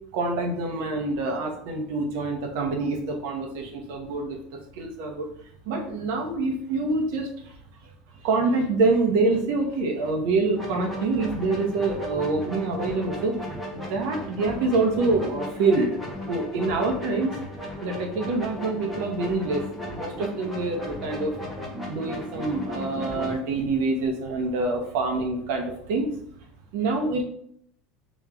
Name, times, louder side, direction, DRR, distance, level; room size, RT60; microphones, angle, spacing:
voice 1, 0.1-4.4 4.8-5.3 5.7-7.3 8.2-13.4 13.7-16.0 16.3-17.3 17.8-19.6 19.9-21.3 21.9-26.1 26.7-27.2, right 3 dB, 65° right, 3 dB, 0.9 m, -26 dB
sound 1, 10.5-23.3, left 1 dB, 5° right, 1.0 m, -35 dB
5.3 x 3.0 x 2.4 m, 0.66 s
cardioid pair, 165°, 0 cm